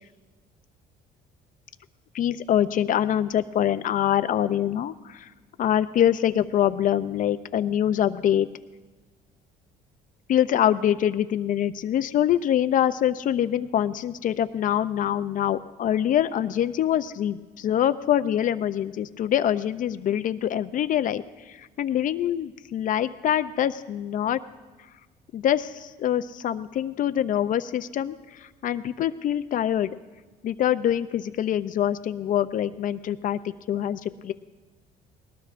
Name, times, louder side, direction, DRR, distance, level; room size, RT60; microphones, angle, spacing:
voice 1, 2.1-5.3 5.6-8.5 10.3-24.4 25.3-29.9 30.4-33.4 33.7-34.3, left 10 dB, 50° left, 12 dB, 0.5 m, -24 dB
19.5 x 18.5 x 2.5 m, 1.3 s
cardioid pair, 110°, 17 cm